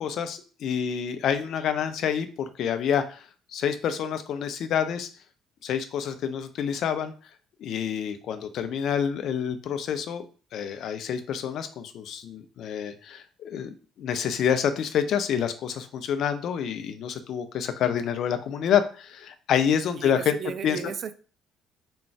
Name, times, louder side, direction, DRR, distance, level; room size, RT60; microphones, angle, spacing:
voice 1, 0.0-3.2 3.5-5.1 5.6-7.1 7.6-10.2 10.5-20.4 20.6-20.8, left 8 dB, 55° left, 9 dB, 0.4 m, -27 dB
voice 2, 19.9-21.1, right 7 dB, 45° right, 12 dB, 0.3 m, -34 dB
3.7 x 2.2 x 4.3 m, 0.38 s
figure-of-eight pair, 50°, 0 cm